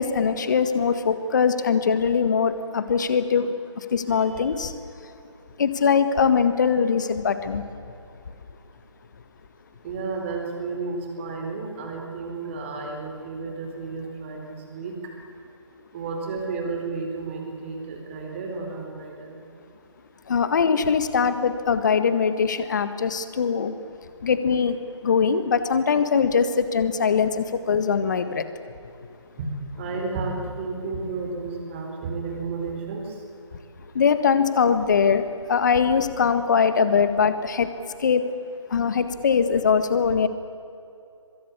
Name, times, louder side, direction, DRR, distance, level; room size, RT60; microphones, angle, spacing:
voice 1, 0.0-4.7 5.6-7.6 20.3-23.7 24.2-24.7 25.0-28.4 33.9-37.7 38.0-38.3 38.7-40.3, left 6 dB, 40° left, 11 dB, 1.7 m, -22 dB
voice 2, 9.8-15.1 15.9-19.4 29.4-29.5 29.8-33.2, right 4 dB, 25° right, 2 dB, 4.3 m, -32 dB
23.5 x 22.0 x 8.5 m, 2.7 s
figure-of-eight pair, 150°, 16 cm